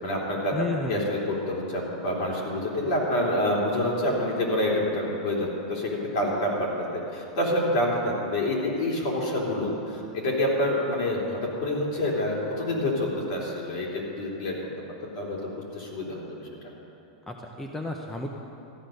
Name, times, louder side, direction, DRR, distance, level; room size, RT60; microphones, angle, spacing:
voice 1, 0.0-14.6 15.0-16.5, left 1 dB, 50° left, -3 dB, 3.3 m, -27 dB
voice 2, 0.5-1.0 17.3-18.3, left 3 dB, 5° left, 2 dB, 0.5 m, -32 dB
13.5 x 10.0 x 6.4 m, 2.8 s
supercardioid pair, 165°, 3 cm